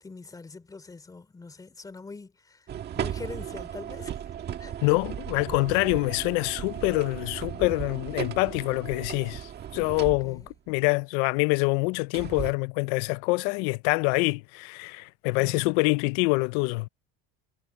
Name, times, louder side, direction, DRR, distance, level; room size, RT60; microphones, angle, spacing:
voice 1, 0.0-4.2 4.6-4.8 10.2-10.5 15.4-15.7, left 3 dB, 10° left, 2.9 m, -43 dB
sound 1, 2.7-10.5 12.1-12.5, right 9 dB, 30° right, 1.7 m, -36 dB
voice 2, 4.8-16.9, left 27 dB, 85° left, 0.5 m, -26 dB
cardioid pair, 175°, 34 cm